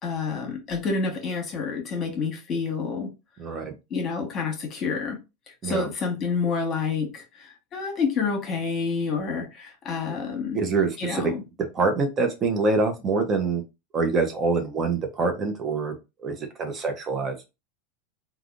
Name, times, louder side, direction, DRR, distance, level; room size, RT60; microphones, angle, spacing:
voice 1, 0.0-3.1 3.9-5.2 5.6-10.6 11.0-11.4, left 5 dB, 35° left, 1.3 m, -28 dB
voice 2, 3.4-3.7 5.6-5.9 10.5-11.3 11.7-13.6 13.9-15.9 16.2-17.4, right 3 dB, 30° right, 0.7 m, -25 dB
3.4 x 2.3 x 2.5 m
hypercardioid pair, 110°, 0 cm